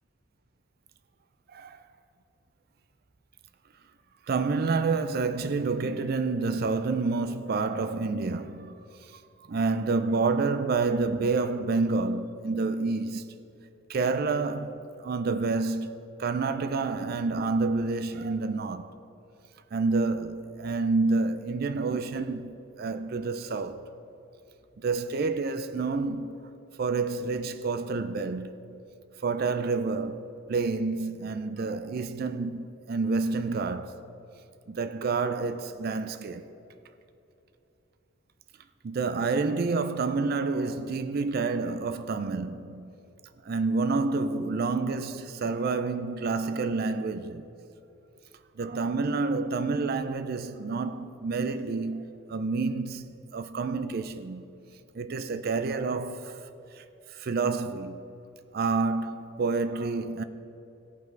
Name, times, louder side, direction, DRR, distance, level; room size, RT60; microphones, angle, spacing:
voice 1, 4.3-8.7 9.1-9.2 9.5-13.3 13.9-18.9 19.7-22.5 22.8-23.8 24.8-26.4 26.8-28.8 29.2-34.0 34.7-36.4 38.8-42.9 43.5-47.4 48.6-54.5 54.9-56.4 56.8-56.9 57.1-58.0 58.5-60.2, right 4 dB, 45° right, 0.4 m, -28 dB
16.5 x 5.6 x 4.5 m
head